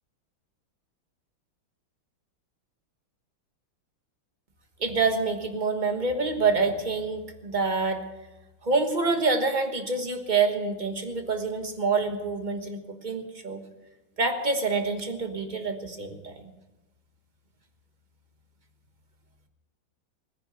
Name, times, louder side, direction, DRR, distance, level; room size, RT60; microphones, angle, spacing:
voice 1, 4.8-8.0 8.6-13.6 14.2-16.4, right 4 dB, 25° right, 6 dB, 1.3 m, -27 dB
18.5 x 10.0 x 7.0 m, 1.1 s
omnidirectional pair, 2.1 m